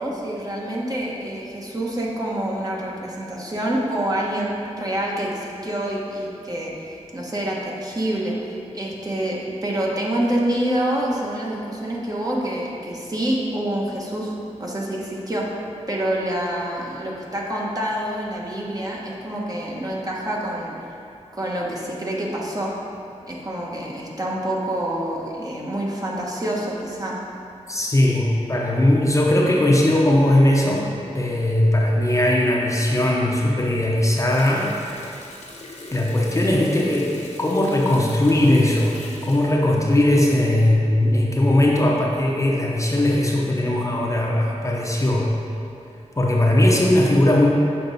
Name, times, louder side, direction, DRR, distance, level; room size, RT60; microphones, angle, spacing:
voice 1, 0.0-14.3 14.6-15.5 15.9-20.8 21.3-22.7 23.3-27.2, right 1 dB, 30° right, -3 dB, 1.1 m, -27 dB
voice 2, 27.7-34.7 35.9-39.0 39.3-45.3 46.2-47.5, left 1 dB, 25° left, -3 dB, 0.8 m, -19 dB
Water tap faucet, 34.3-40.6 41.0-41.2, left 2 dB, 70° left, 1.1 m, -43 dB
6.8 x 5.3 x 4.1 m, 2.6 s
wide cardioid pair, 90°, 12 cm